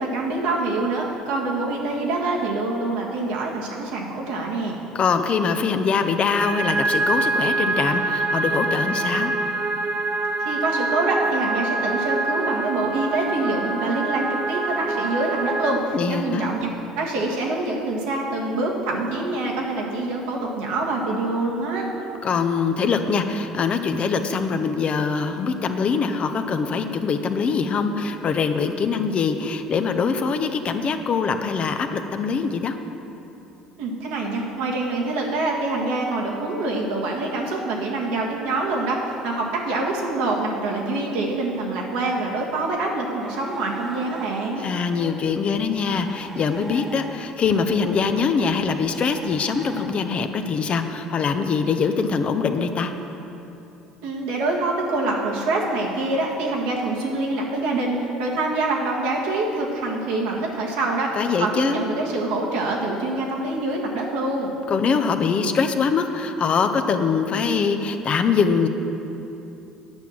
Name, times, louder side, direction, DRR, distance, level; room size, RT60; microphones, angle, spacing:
voice 1, 0.0-4.8 10.4-16.7 17.0-21.9 33.8-44.7 54.0-61.1 61.4-64.5, right 2 dB, 75° right, -2 dB, 1.6 m, -25 dB
voice 2, 4.9-9.3 15.9-16.5 22.2-32.8 44.6-52.9 61.1-61.9 64.7-68.7, left 5 dB, 45° left, 7 dB, 0.7 m, -23 dB
sound 1, 6.4-15.8, right 2 dB, 50° right, 0.7 m, -25 dB
sound 2, 43.2-49.9, right 1 dB, 10° right, 1.4 m, -41 dB
8.9 x 6.0 x 7.2 m, 3.0 s
hypercardioid pair, 65°, 3 cm